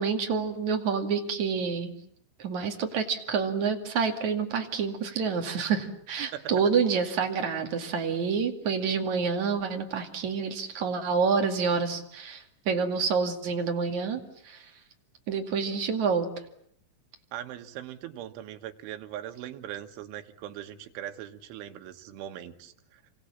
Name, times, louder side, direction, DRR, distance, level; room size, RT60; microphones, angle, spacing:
voice 1, 0.0-1.9 2.4-14.6 15.3-16.3, right 5 dB, 45° right, 4 dB, 3.1 m, -28 dB
voice 2, 17.3-22.7, right 11 dB, 85° right, 7 dB, 3.9 m, -40 dB
29.5 x 25.5 x 7.3 m, 0.68 s
omnidirectional pair, 5.4 m